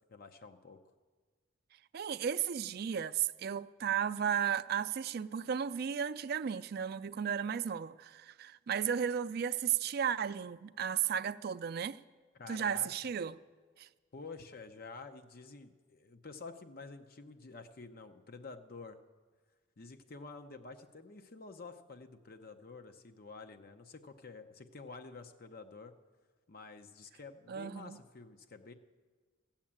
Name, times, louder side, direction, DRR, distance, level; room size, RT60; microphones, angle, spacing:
voice 1, 0.1-0.8 12.3-12.9 14.1-19.0 19.8-25.9 26.5-28.7, left 4 dB, 50° left, 0.7 m, -49 dB
voice 2, 1.9-12.0 12.5-13.4 13.8-13.9 27.5-28.0, right 8 dB, 55° right, 0.4 m, -34 dB
14.5 x 7.3 x 8.7 m
head